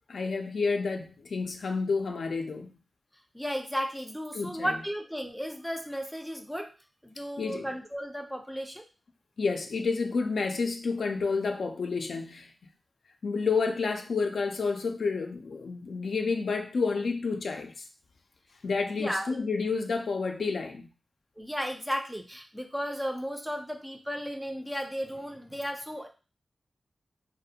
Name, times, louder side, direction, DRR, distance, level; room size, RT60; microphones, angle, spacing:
voice 1, 0.1-2.7 4.3-4.7 7.4-7.7 9.4-12.5 13.2-17.8 18.6-20.9, left 4 dB, 80° left, 4 dB, 0.3 m, -30 dB
voice 2, 3.3-6.7 7.0-8.8 18.8-19.4 21.4-26.1, equal, 5° right, 3 dB, 0.3 m, -34 dB
2.4 x 2.1 x 2.7 m, 0.33 s
cardioid pair, 65°, 0 cm